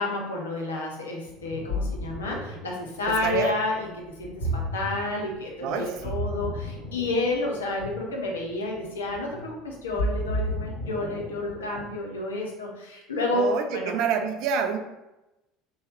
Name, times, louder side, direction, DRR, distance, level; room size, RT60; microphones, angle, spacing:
voice 1, 0.0-13.9, left 2 dB, 75° left, -1 dB, 0.6 m, -30 dB
Ocean, 1.3-12.0, equal, 55° left, 1.1 m, -33 dB
voice 2, 3.2-3.5 5.6-6.1 13.3-14.8, right 6 dB, 55° right, 5 dB, 0.4 m, -27 dB
2.7 x 2.2 x 3.3 m, 0.96 s
figure-of-eight pair, 65°, 0 cm